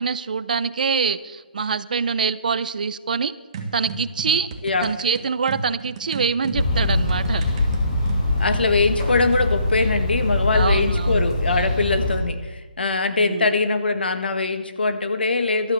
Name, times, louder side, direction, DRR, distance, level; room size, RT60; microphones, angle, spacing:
voice 1, 0.0-3.3 3.7-4.5 4.8-7.4 10.5-11.3 13.2-13.5, right 5 dB, 55° right, 16 dB, 0.6 m, -24 dB
sound 1, 3.5-8.7, right 3 dB, 30° right, 1.2 m, -34 dB
sound 2, 6.6-12.2, left 2 dB, 35° left, 3.4 m, -23 dB
voice 2, 8.4-15.7, left 3 dB, 80° left, 9 dB, 1.4 m, -22 dB
13.0 x 12.5 x 6.6 m, 1.2 s
hypercardioid pair, 165°, 5 cm